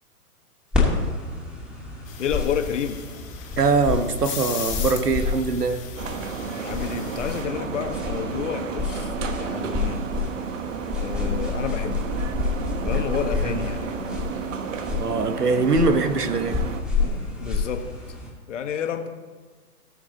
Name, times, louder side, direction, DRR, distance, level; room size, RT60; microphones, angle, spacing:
sound 1, 0.7-18.3, left 4 dB, ahead, 2.6 m, -29 dB
sound 2, 2.1-7.4, left 9 dB, 25° left, 2.2 m, -38 dB
voice 1, 2.2-3.0 6.6-10.0 10.9-12.0 12.8-14.2 17.4-17.8 18.5-19.1, left 8 dB, 50° left, 6 dB, 1.4 m, -30 dB
voice 2, 3.6-5.9 12.9-13.0 13.4-13.6 15.0-16.6, right 3 dB, 85° right, 10 dB, 1.2 m, -22 dB
sound 3, 6.0-16.8, right 6 dB, 55° right, 1.2 m, -32 dB
18.5 x 6.7 x 4.1 m, 1.5 s
figure-of-eight pair, 125°, 46 cm